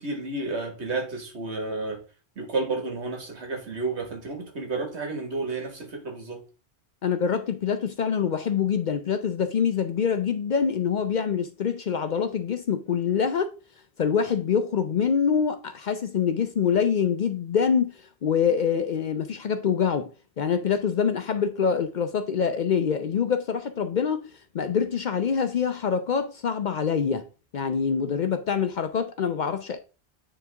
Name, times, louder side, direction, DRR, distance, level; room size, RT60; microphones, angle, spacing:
voice 1, 0.0-2.0 2.4-6.4, right 3 dB, 80° right, 1.9 m, -31 dB
voice 2, 7.0-13.5 14.0-17.9 18.2-20.1 20.4-24.3 24.5-27.3 27.5-29.8, left 7 dB, 55° left, 0.6 m, -25 dB
9.2 x 3.2 x 3.4 m
omnidirectional pair, 1.1 m